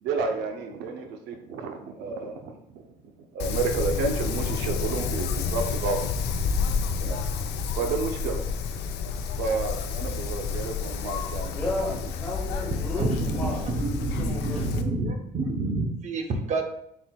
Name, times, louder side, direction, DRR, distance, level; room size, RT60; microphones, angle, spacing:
voice 1, 0.0-2.8 3.3-6.0 7.0-7.2 7.8-8.4 9.4-11.5, right 4 dB, 85° right, 5 dB, 0.5 m, -30 dB
Wind, 3.4-14.8, left 5 dB, 80° left, 0.4 m, -30 dB
voice 2, 11.5-13.8 14.0-14.7, left 1 dB, 10° left, -5 dB, 1.0 m, -33 dB
voice 3, 13.0-16.6, right 3 dB, 45° right, 5 dB, 0.7 m, -28 dB
4.3 x 4.1 x 2.2 m, 0.76 s
cardioid pair, 110°, 17 cm